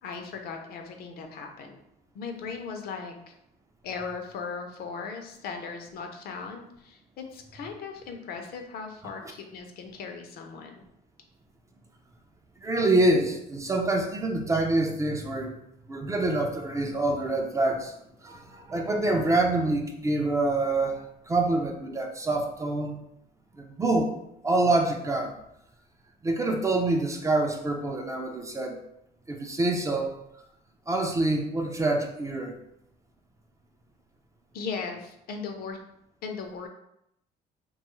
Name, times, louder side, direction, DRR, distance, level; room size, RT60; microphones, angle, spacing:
voice 1, 0.0-1.8 2.1-3.3 3.8-10.8 34.5-35.8 36.2-36.7, left 5 dB, 65° left, 4 dB, 0.5 m, -38 dB
voice 2, 12.6-15.6 15.9-18.0 18.2-23.0 23.6-24.1 24.4-25.4 26.2-28.8 29.3-30.2 30.9-32.6, right 2 dB, 20° right, 3 dB, 0.3 m, -26 dB
2.7 x 2.3 x 3.0 m, 0.78 s
cardioid pair, 110°, 17 cm